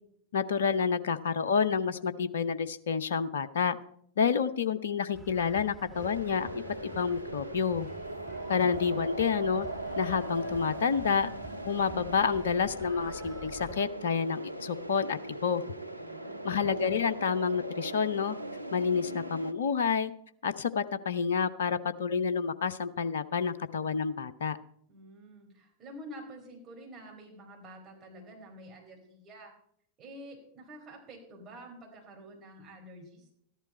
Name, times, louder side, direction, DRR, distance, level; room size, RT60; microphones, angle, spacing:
voice 1, 0.3-3.8 4.2-7.9 8.5-9.7 10.0-11.3 11.6-15.7 16.4-18.3 18.7-20.1 20.4-24.6, left 6 dB, 65° left, 13 dB, 0.6 m, -29 dB
sound 1, 5.1-13.9, right 2 dB, ahead, 1.2 m, -49 dB
sound 2, 5.9-19.5, right 1 dB, 90° right, 0.6 m, -39 dB
voice 2, 16.0-16.5 24.9-29.5 30.0-33.3, right 1 dB, 30° right, 0 dB, 4.2 m, -48 dB
13.5 x 11.5 x 4.4 m, 0.68 s
figure-of-eight pair, 90°, 0 cm